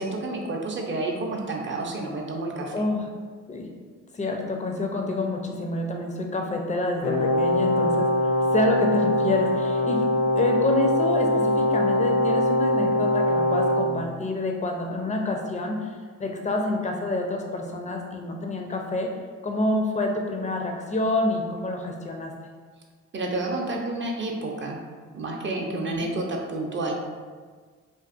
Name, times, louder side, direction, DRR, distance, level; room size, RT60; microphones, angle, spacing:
voice 1, 0.0-2.9 23.1-24.8 25.1-26.9, right 2 dB, 40° right, 0 dB, 0.5 m, -30 dB
voice 2, 2.7-3.1 3.5-3.7 4.1-19.1 19.4-22.3 25.7-26.1, left 2 dB, 25° left, 2 dB, 0.4 m, -28 dB
Brass instrument, 7.0-13.9, left 1 dB, 75° left, 0.6 m, -22 dB
2.5 x 2.4 x 2.4 m, 1.5 s
supercardioid pair, 65°, 32 cm